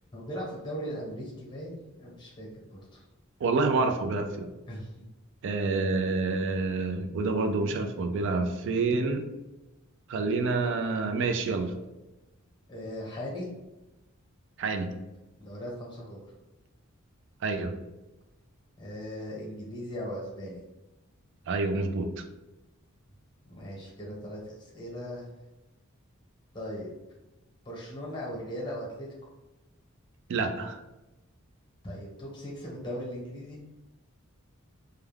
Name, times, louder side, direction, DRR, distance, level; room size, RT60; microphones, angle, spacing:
voice 1, 0.1-3.0 4.7-4.9 12.7-13.5 15.4-16.2 18.8-20.6 23.5-25.3 26.5-26.9 27.6-29.1 31.8-33.6, equal, 20° left, -3 dB, 0.9 m, -38 dB
voice 2, 3.4-4.5 5.4-9.3 10.1-11.8 14.6-15.0 17.4-17.7 21.5-22.2 30.3-30.8, right 3 dB, 60° right, 6 dB, 0.3 m, -28 dB
2.3 x 2.3 x 3.2 m, 1.0 s
head